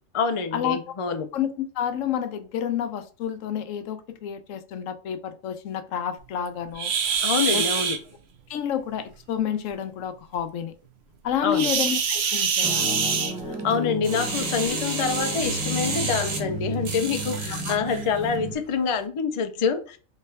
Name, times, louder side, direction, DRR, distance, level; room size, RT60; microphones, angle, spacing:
voice 1, 0.1-1.3 7.2-8.0 11.4-11.7 13.5-20.0, left 5 dB, 60° left, 0.3 m, -26 dB
voice 2, 1.3-6.9 7.5-7.6 8.5-10.7 11.2-12.9 17.5-17.7, left 9 dB, 80° left, 1.0 m, -29 dB
sound 1, 6.8-8.0 11.5-13.8 15.0-15.2 15.7-15.8 16.4-16.5 17.3-17.4 17.9-18.1, right 6 dB, 60° right, 0.9 m, -25 dB
sound 2, 12.6-18.5, equal, 5° right, 0.7 m, -32 dB
sound 3, 14.0-17.8 18.4-18.5, right 4 dB, 80° right, 1.3 m, -31 dB
4.0 x 3.3 x 3.3 m
omnidirectional pair, 1.3 m